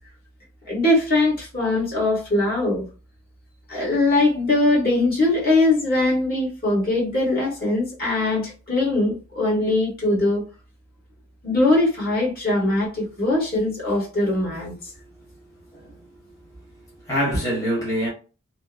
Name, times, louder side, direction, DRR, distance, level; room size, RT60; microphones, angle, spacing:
voice 1, 0.7-2.9 3.7-10.4 11.4-14.9, left 2 dB, 45° left, 1.4 m, -21 dB
voice 2, 15.7-16.1 17.0-18.1, equal, 15° left, 1.1 m, -25 dB
2.9 x 2.0 x 2.4 m
head